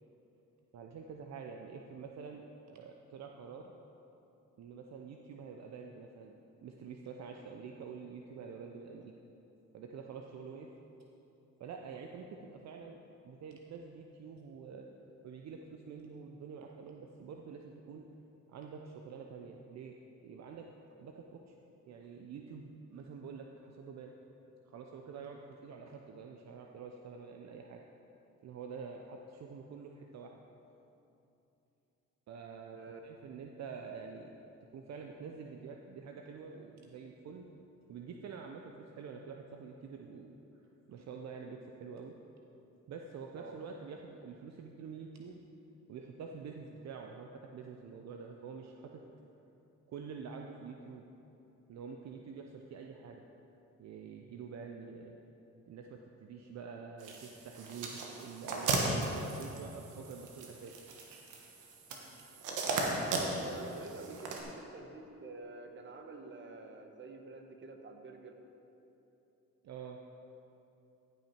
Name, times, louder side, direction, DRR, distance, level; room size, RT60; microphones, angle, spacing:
voice 1, 0.7-3.7 4.6-9.1 9.7-10.7 11.6-14.9 15.2-18.1 18.5-20.0 20.2-20.7 21.0-21.5 21.9-24.1 24.7-27.8 28.4-30.4 32.3-34.4 34.7-37.4 37.9-40.3 40.9-42.2 42.9-45.4 45.9-49.0 49.9-51.1 51.7-53.2 53.8-55.2 55.7-60.7 64.3-64.4 69.6-70.0, right 5 dB, 60° right, 2 dB, 0.7 m, -47 dB
voice 2, 32.7-33.0 43.3-43.6 63.2-68.3, right 3 dB, 40° right, 4 dB, 1.1 m, -48 dB
sound 1, 57.0-64.4, right 3 dB, 85° right, 1.3 m, -37 dB
14.5 x 5.8 x 4.5 m, 2.9 s
cardioid pair, 90°, 30 cm